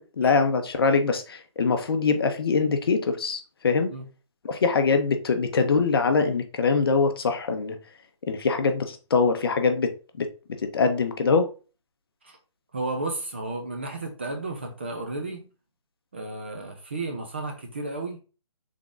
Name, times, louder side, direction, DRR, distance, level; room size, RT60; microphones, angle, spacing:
voice 1, 0.0-3.9 4.5-7.8 8.3-10.3 10.6-11.5, left 4 dB, 50° left, 0.6 m, -23 dB
voice 2, 12.7-15.4 16.1-18.2, right 2 dB, 20° right, 0.4 m, -33 dB
3.7 x 3.5 x 2.4 m
hypercardioid pair, 170°, 16 cm